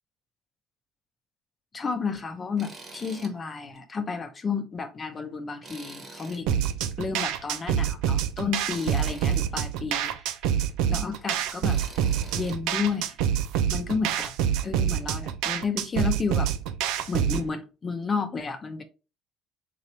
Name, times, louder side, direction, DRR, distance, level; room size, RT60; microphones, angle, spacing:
voice 1, 1.7-6.6 7.0-10.5 10.9-11.8 12.3-13.1 13.7-14.3 14.6-16.5 17.1-18.8, left 5 dB, 35° left, 0.7 m, -31 dB
Tools, 2.6-3.3 3.7-3.8 5.6-6.7 8.7-9.4 11.6-12.6, right 3 dB, 40° right, 1.4 m, -45 dB
sound 1, 6.5-17.5, right 9 dB, 80° right, 0.4 m, -27 dB
3.8 x 2.9 x 3.1 m
supercardioid pair, 75°, 0 cm